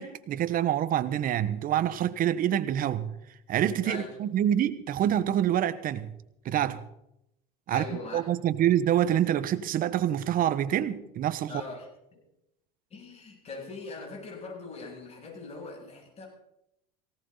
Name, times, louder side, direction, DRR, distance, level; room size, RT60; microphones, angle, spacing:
voice 1, 0.0-3.1 3.5-6.1 6.4-6.8 7.7-7.8 8.1-11.5, right 11 dB, 45° right, 1.2 m, -26 dB
voice 2, 3.8-4.1 7.7-8.2 11.5-12.2 12.9-16.3, left 4 dB, 30° left, 7.9 m, -41 dB
18.5 x 17.0 x 4.1 m
supercardioid pair, 105°, 21 cm